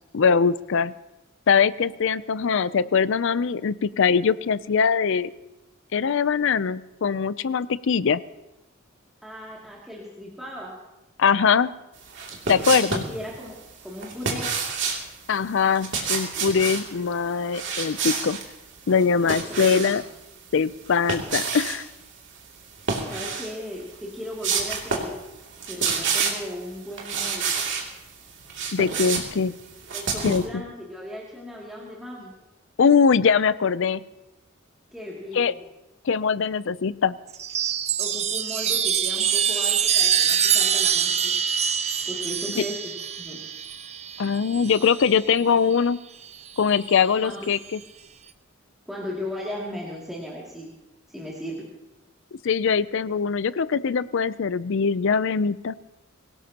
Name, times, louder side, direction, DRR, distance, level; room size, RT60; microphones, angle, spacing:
voice 1, 0.1-0.9 1.5-5.3 5.9-8.2 11.2-11.7 12.5-13.0 15.3-18.4 18.9-20.0 20.5-21.9 28.7-29.5 30.2-30.6 32.8-34.0 35.3-35.5 36.0-37.2 44.2-46.0 46.6-47.8 52.4-55.7, left 6 dB, 60° left, 17 dB, 0.5 m, -22 dB
voice 2, 9.2-10.8 12.4-14.5 19.5-19.9 23.1-25.2 25.7-27.6 29.9-32.3 34.9-35.6 38.0-41.3 42.1-42.9 43.2-43.4 47.2-47.5 48.9-50.7 51.1-51.7, left 1 dB, ahead, -7 dB, 2.5 m, -36 dB
sound 1, 12.1-13.1 14.0-15.0 15.7-16.9 17.5-18.4 18.9-20.0 20.9-21.8 22.8-23.5 23.9-24.0 24.4-25.2 25.5-26.5 27.0-27.9 28.3-30.5, right 5 dB, 60° right, 2.7 m, -28 dB
Chime, 37.3-45.1 46.3-47.0, right 8 dB, 30° right, 0.6 m, -25 dB
24.0 x 17.0 x 2.9 m, 0.99 s
head